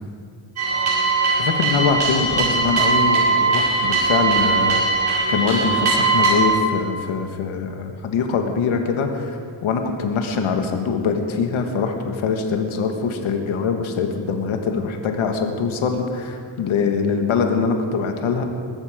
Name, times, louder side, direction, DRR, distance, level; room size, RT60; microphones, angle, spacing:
sound 1, 0.6-6.4, right 4 dB, 70° right, 5.0 m, -20 dB
voice 1, 1.4-18.4, left 5 dB, 75° left, 4 dB, 1.8 m, -23 dB
20.5 x 14.0 x 5.1 m, 2.2 s
cardioid pair, 120°, 49 cm